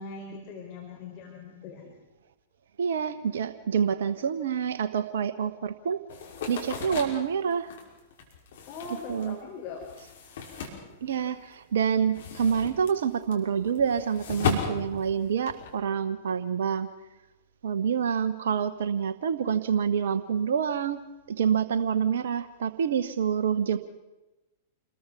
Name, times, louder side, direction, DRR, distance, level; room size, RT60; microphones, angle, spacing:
voice 1, 0.0-1.9 8.7-9.8, left 4 dB, 40° left, 1 dB, 4.5 m, -40 dB
voice 2, 2.8-6.0 6.5-7.7 9.1-9.3 10.6-10.7 11.0-16.9 17.6-23.8, right 7 dB, 65° right, 12 dB, 1.0 m, -27 dB
sound 1, 6.1-11.5 11.8-15.7, left 6 dB, 60° left, 5.6 m, -35 dB
28.5 x 21.0 x 6.2 m, 1.1 s
figure-of-eight pair, 100°, 0 cm